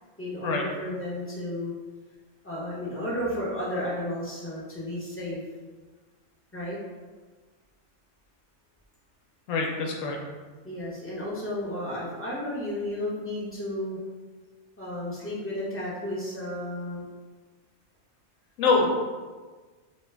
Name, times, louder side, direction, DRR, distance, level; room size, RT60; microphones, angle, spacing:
voice 1, 0.2-1.7 2.4-5.4 6.5-6.8 10.6-14.0 14.8-17.0 18.8-18.9, left 1 dB, 20° left, -8 dB, 0.4 m, -33 dB
voice 2, 9.5-10.2 18.6-18.9, left 4 dB, 75° left, 0 dB, 0.9 m, -24 dB
2.9 x 2.2 x 3.2 m, 1.4 s
omnidirectional pair, 1.4 m